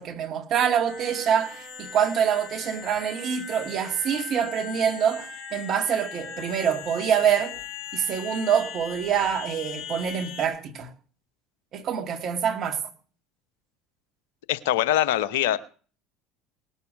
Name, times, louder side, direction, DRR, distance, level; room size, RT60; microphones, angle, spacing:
voice 1, 0.0-7.5 7.9-10.9 11.7-12.8, right 8 dB, 45° right, 1.8 m, -25 dB
sound 1, 0.9-10.5, left 7 dB, 40° left, 4.9 m, -39 dB
voice 2, 14.5-15.6, left 12 dB, 70° left, 0.8 m, -23 dB
19.0 x 6.8 x 6.3 m
hypercardioid pair, 65°, 0 cm